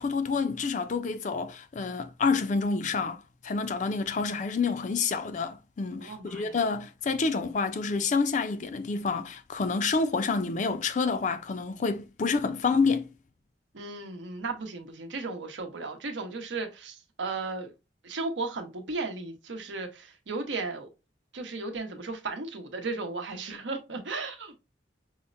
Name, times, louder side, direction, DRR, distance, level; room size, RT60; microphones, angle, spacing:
voice 1, 0.0-13.1, left 4 dB, 40° left, 0.4 m, -28 dB
voice 2, 6.0-6.6 13.7-17.7 18.0-20.9 21.3-24.5, right 3 dB, 85° right, 0.8 m, -35 dB
5.5 x 2.0 x 2.5 m
head